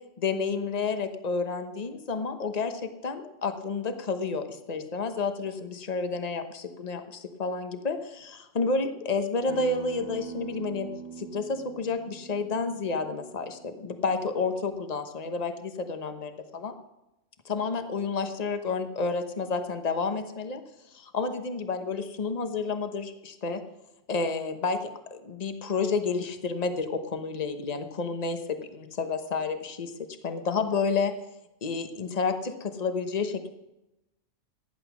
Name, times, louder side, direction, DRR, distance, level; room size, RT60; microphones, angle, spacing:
voice 1, 0.2-10.9 11.2-16.7 17.4-20.6 20.9-23.6 24.1-24.8 25.1-29.9 30.2-31.1 31.6-33.5, left 4 dB, 35° left, 8 dB, 1.1 m, -30 dB
Acoustic guitar, 9.5-14.7, right 5 dB, 20° right, 1.4 m, -43 dB
15.0 x 10.5 x 6.2 m, 0.95 s
omnidirectional pair, 1.2 m